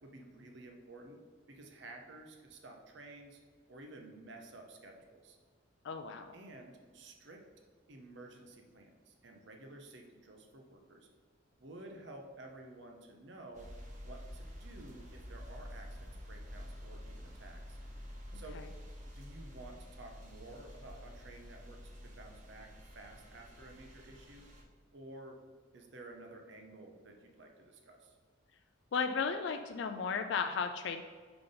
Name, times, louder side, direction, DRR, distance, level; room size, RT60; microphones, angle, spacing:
voice 1, 0.0-1.2 1.5-3.4 3.7-5.4 6.3-7.4 7.9-11.1 11.6-13.7 14.0-17.8 18.3-18.6 19.1-24.5 24.9-25.4 25.7-28.2, right 2 dB, 60° right, 3 dB, 0.8 m, -52 dB
voice 2, 5.8-6.3 18.3-18.7 28.9-31.0, left 5 dB, 65° left, 7 dB, 0.3 m, -35 dB
sound 1, 13.5-24.6, equal, 40° right, 1.0 m, -49 dB
5.8 x 5.1 x 3.9 m, 1.5 s
head